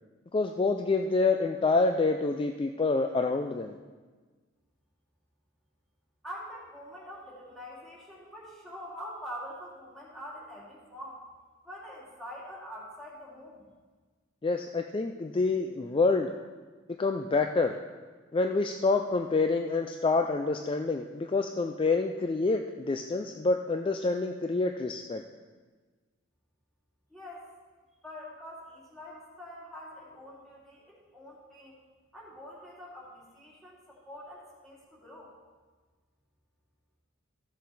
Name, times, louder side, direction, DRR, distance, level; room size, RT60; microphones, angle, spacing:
voice 1, 0.3-3.8 14.4-16.3 17.0-17.8 18.3-25.2, left 3 dB, 25° left, 5 dB, 0.4 m, -27 dB
voice 2, 6.2-11.2 11.6-13.6 27.1-27.5 28.0-31.8 32.1-35.3, equal, ahead, -6 dB, 2.4 m, -45 dB
14.5 x 6.5 x 4.0 m, 1.4 s
head